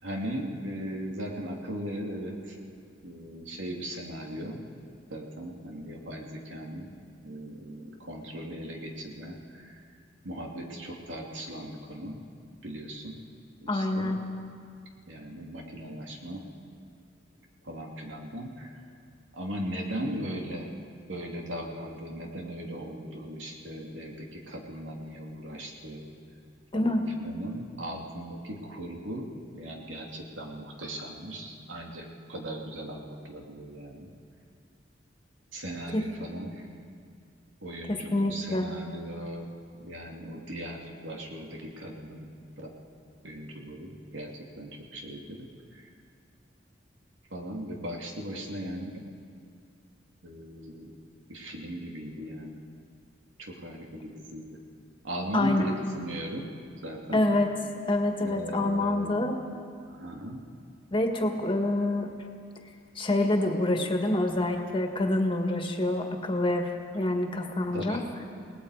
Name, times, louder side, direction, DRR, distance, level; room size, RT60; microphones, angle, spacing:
voice 1, 0.0-2.6 3.0-4.6 5.1-6.9 7.2-9.9 10.2-12.2 12.6-13.2 13.6-14.1 15.1-16.4 17.6-18.8 19.3-20.7 21.1-26.1 26.7-29.3 29.5-34.1 35.5-36.7 37.6-42.3 43.2-45.4 45.7-45.9 47.3-49.0 50.2-50.9 51.3-52.6 53.4-54.4 55.0-56.5 56.8-57.2 58.2-59.3 59.8-60.4 61.2-61.3 67.7-68.0, equal, 90° right, 0 dB, 2.8 m, -38 dB
voice 2, 13.7-14.2 26.7-27.0 35.9-36.0 37.9-38.7 55.3-55.7 57.1-57.5 57.9-59.4 60.9-62.1 63.0-68.0, left 1 dB, 25° left, 3 dB, 1.8 m, -26 dB
29.0 x 19.0 x 5.0 m, 2.3 s
head